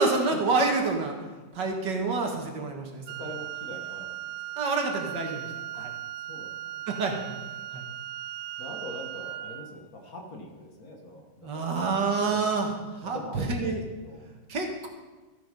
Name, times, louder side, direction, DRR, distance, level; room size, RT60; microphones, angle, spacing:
voice 1, 0.0-3.0 4.6-5.5 5.7-5.9 6.9-7.4 7.7-7.8 11.4-13.8 14.5-14.9, right 3 dB, 60° right, 2 dB, 2.0 m, -28 dB
Wind instrument woodwind instrument, 3.1-9.7, right 14 dB, 80° right, 1.3 m, -38 dB
voice 2, 3.2-4.3 5.8-5.9 6.3-7.0 8.6-12.7 13.0-13.8 14.0-14.3, left 1 dB, 50° left, 1 dB, 1.8 m, -43 dB
13.5 x 8.7 x 5.4 m, 1.2 s
omnidirectional pair, 2.2 m